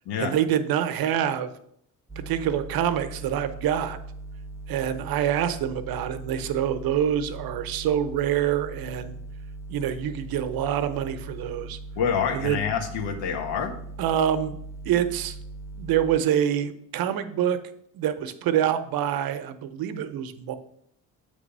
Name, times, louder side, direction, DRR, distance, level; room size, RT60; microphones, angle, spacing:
voice 1, 0.2-1.5 2.2-4.0 4.7-9.2 9.7-11.8 12.3-12.7 14.0-14.6 14.9-15.4 15.8-17.6 17.9-20.5, right 10 dB, 60° right, 11 dB, 0.8 m, -26 dB
sound 1, 2.1-16.2, right 2 dB, 10° right, 0.3 m, -40 dB
voice 2, 12.0-13.7, left 7 dB, 75° left, 5 dB, 1.2 m, -27 dB
7.1 x 3.4 x 5.3 m, 0.70 s
supercardioid pair, 65°, 41 cm